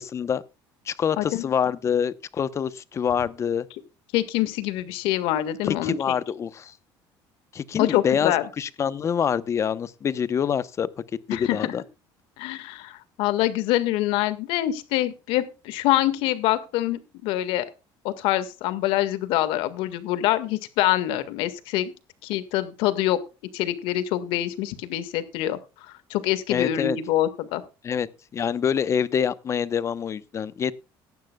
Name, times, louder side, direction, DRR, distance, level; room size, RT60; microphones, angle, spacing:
voice 1, 0.1-0.4 0.9-3.7 5.6-6.7 7.5-10.9 11.3-11.8 26.5-27.0 27.8-28.1 28.3-30.7, left 7 dB, 35° left, 0.8 m, -26 dB
voice 2, 1.2-1.5 4.1-6.1 7.8-8.4 11.3-11.7 12.4-17.6 18.0-21.9 22.2-23.2 23.5-25.6 26.1-27.6, left 14 dB, 85° left, 1.8 m, -25 dB
17.5 x 12.0 x 2.3 m
cardioid pair, 135°, 9 cm